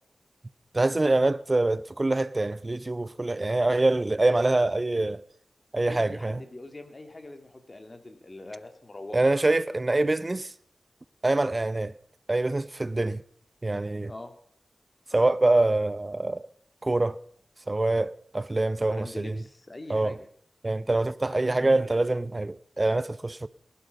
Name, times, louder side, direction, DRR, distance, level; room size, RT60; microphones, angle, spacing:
voice 1, 0.7-5.2 5.7-6.4 9.1-10.5 11.2-11.9 12.3-13.2 13.6-14.1 15.1-16.5 16.8-17.2 17.7-19.3 19.9-20.2 20.6-23.5, right 2 dB, 35° right, 0.7 m, -25 dB
voice 2, 5.8-9.3 12.9-13.0 14.1-14.3 18.8-20.2 21.3-22.0, left 2 dB, 40° left, 2.5 m, -43 dB
19.0 x 11.5 x 5.4 m
cardioid pair, 55°, 0 cm